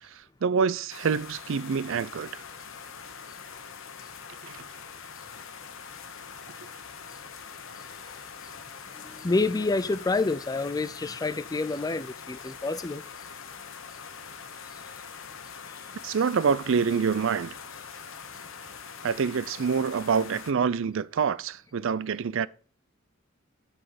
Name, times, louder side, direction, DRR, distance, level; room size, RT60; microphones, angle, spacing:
voice 1, 0.4-2.3 4.4-4.5 16.0-17.6 19.0-22.5, right 6 dB, 65° right, 0.4 m, -26 dB
sound 1, 0.9-20.5, left 6 dB, 70° left, 1.2 m, -43 dB
voice 2, 8.9-13.0 14.7-14.8 15.7-15.8, left 3 dB, 20° left, 0.4 m, -28 dB
11.0 x 4.3 x 7.7 m
head